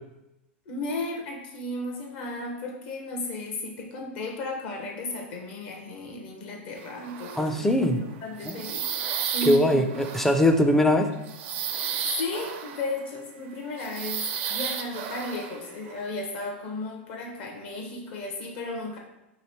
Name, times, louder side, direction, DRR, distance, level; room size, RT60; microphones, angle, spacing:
voice 1, 0.7-8.9 9.3-9.8 11.7-19.0, left 2 dB, 60° left, 1 dB, 0.8 m, -34 dB
sound 1, 6.8-13.2 13.8-16.0, right 8 dB, 60° right, 0.5 m, -33 dB
voice 2, 7.4-8.0 8.5-8.6 9.4-11.1, left 1 dB, 5° left, 5 dB, 0.4 m, -21 dB
3.1 x 2.7 x 4.2 m, 0.92 s
hypercardioid pair, 120°, 7 cm